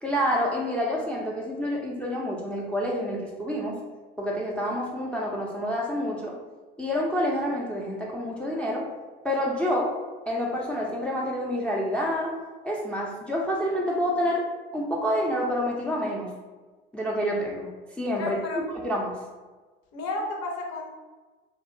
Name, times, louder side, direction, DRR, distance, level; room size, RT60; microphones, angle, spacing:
voice 1, 0.0-3.8 4.2-6.4 6.8-8.9 9.2-9.9 10.3-12.4 12.6-14.4 14.7-16.3 16.9-17.7 18.0-18.4 18.8-19.2, equal, 5° left, -3 dB, 0.4 m, -28 dB
voice 2, 18.2-18.6 19.9-20.9, left 2 dB, 55° left, 1 dB, 0.7 m, -32 dB
2.6 x 2.2 x 2.5 m, 1.3 s
hypercardioid pair, 70°, 30 cm